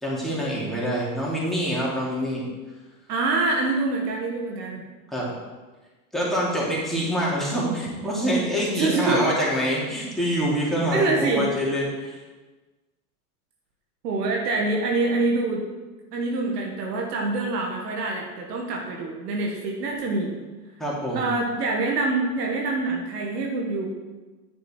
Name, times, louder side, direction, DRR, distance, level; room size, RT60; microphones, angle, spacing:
voice 1, 0.0-2.4 5.1-5.3 6.1-12.2 20.8-21.2, equal, ahead, -6 dB, 3.1 m, -25 dB
voice 2, 3.1-4.8 8.8-9.2 10.9-11.5 14.0-15.6 16.1-20.4 21.1-23.9, right 3 dB, 75° right, 0 dB, 1.9 m, -25 dB
9.7 x 6.6 x 4.6 m, 1.3 s
hypercardioid pair, 110°, 48 cm